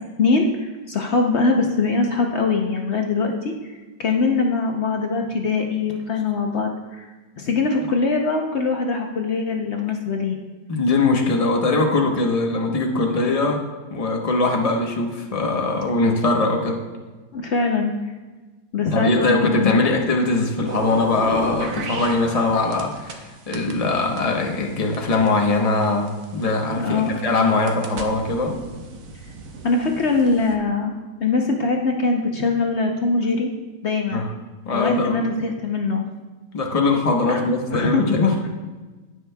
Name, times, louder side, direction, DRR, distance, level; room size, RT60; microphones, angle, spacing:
voice 1, 0.2-7.1 7.4-10.4 17.3-17.9 18.7-19.8 26.8-27.1 29.6-30.9 31.2-33.5 33.8-34.3 34.7-36.0 37.2-38.0, left 4 dB, 70° left, 2 dB, 0.6 m, -22 dB
voice 2, 10.7-13.6 13.9-16.8 18.9-28.6 34.1-34.3 34.6-35.2 36.5-38.4, left 3 dB, 30° left, 1 dB, 0.6 m, -21 dB
sound 1, 20.6-23.2 23.5-26.5 27.1-30.6, right 4 dB, 60° right, 1.2 m, -34 dB
16.0 x 6.3 x 2.3 m, 1.2 s
omnidirectional pair, 2.1 m